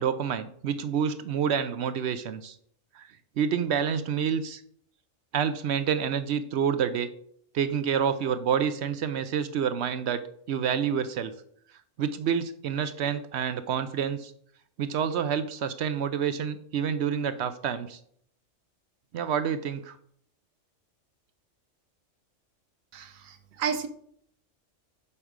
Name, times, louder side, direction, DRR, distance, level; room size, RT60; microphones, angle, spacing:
voice 1, 0.0-2.5 2.9-3.1 3.4-4.6 5.3-7.1 7.5-10.2 10.5-11.3 12.0-14.3 14.8-18.0 19.1-20.0, right 7 dB, 65° right, 12 dB, 0.8 m, -28 dB
voice 2, 22.9-23.9, right 6 dB, 90° right, 7 dB, 1.3 m, -32 dB
7.1 x 4.8 x 5.0 m, 0.64 s
omnidirectional pair, 1.4 m